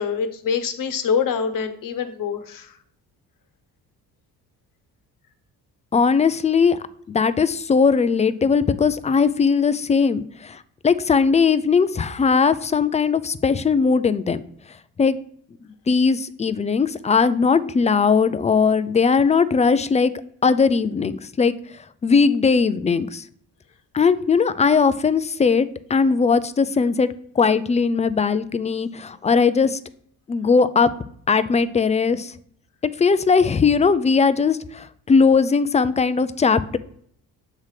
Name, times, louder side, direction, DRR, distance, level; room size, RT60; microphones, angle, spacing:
voice 1, 0.0-2.8, left 6 dB, 60° left, 9 dB, 1.0 m, -25 dB
voice 2, 5.9-6.8 7.1-10.6 10.8-14.4 15.0-15.2 15.9-20.1 20.4-21.5 22.0-23.2 23.9-27.1 27.4-29.8 30.3-30.9 31.3-32.3 33.0-36.8, left 5 dB, 20° left, 14 dB, 0.3 m, -19 dB
7.4 x 3.2 x 5.7 m, 0.63 s
cardioid pair, 90°, 38 cm